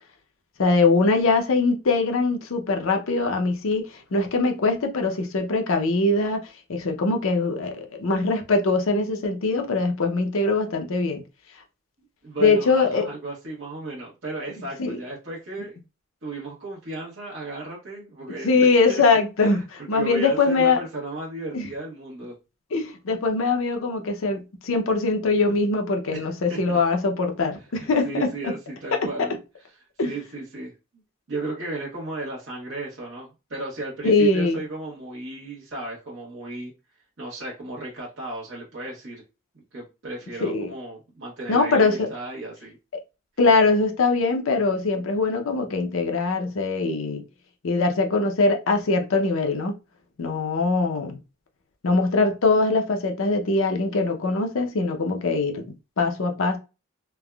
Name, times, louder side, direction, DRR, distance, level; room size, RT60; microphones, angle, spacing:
voice 1, 0.6-11.2 12.4-13.1 14.8-15.0 18.4-20.8 21.5-21.7 22.7-28.3 29.2-29.3 30.0-30.1 34.0-34.6 40.4-40.7 41.5-42.1 43.4-47.2 47.6-49.7 50.2-51.2 51.8-55.6 56.0-56.6, left 3 dB, 80° left, 0.6 m, -22 dB
voice 2, 12.2-15.8 16.2-18.5 18.9-19.0 19.4-19.6 19.9-22.3 26.1-26.6 27.7-29.3 30.0-30.7 31.3-36.7 37.2-39.2 39.7-42.8, right 2 dB, 60° right, 0.8 m, -34 dB
3.3 x 2.0 x 2.2 m
head